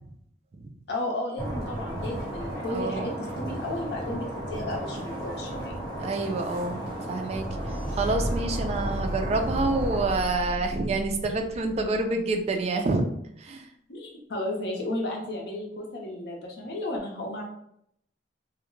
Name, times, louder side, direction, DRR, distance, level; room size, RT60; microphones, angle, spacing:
voice 1, 0.9-3.1 3.4-5.8 13.9-17.4, left 1 dB, 65° left, 0 dB, 0.6 m, -33 dB
sound 1, 1.4-10.2, right 1 dB, 20° left, 1.1 m, -34 dB
voice 2, 2.7-3.1 6.0-7.5 8.0-13.1 13.4-13.7, right 3 dB, 35° right, 4 dB, 0.3 m, -27 dB
sound 2, 7.5-12.4, equal, 10° right, 0.7 m, -34 dB
2.2 x 2.0 x 3.1 m, 0.72 s
head